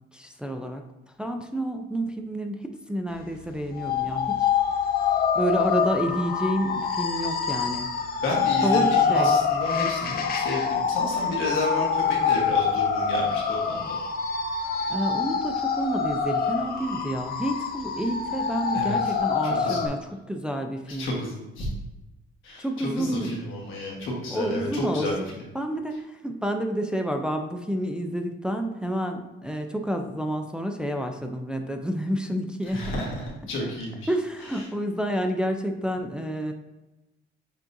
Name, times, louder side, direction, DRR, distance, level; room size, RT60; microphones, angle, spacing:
voice 1, 0.1-0.8 1.2-4.5 5.3-7.9 8.6-9.3 14.9-21.1 22.6-23.4 24.3-25.3 25.5-33.0 34.1-36.5, equal, 5° right, 3 dB, 0.4 m, -29 dB
sound 1, 3.8-19.9, left 6 dB, 50° left, 0.6 m, -25 dB
voice 2, 8.2-13.9 18.7-19.0 19.4-19.9 20.9-21.7 22.4-25.4 32.7-34.1 34.5-34.7, left 1 dB, 85° left, -2 dB, 1.3 m, -31 dB
7.3 x 2.4 x 2.6 m, 1.0 s
cardioid pair, 90°, 20 cm